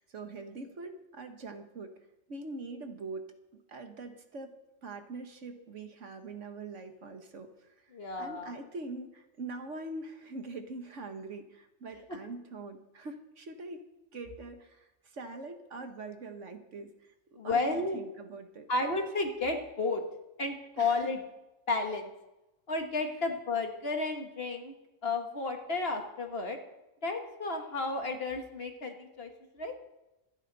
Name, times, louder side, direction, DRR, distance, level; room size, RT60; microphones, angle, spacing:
voice 1, 0.0-2.0 2.3-4.5 4.8-7.8 8.2-13.9 14.1-18.7 20.8-21.1, right 3 dB, 65° right, 6 dB, 1.7 m, -43 dB
voice 2, 7.9-8.5 17.4-18.0 18.7-20.0 20.4-21.2 21.7-22.1 22.7-24.7 25.0-26.6 27.0-29.3 29.6-29.7, left 3 dB, 50° left, 4 dB, 1.9 m, -32 dB
26.5 x 9.1 x 4.1 m, 0.97 s
omnidirectional pair, 1.3 m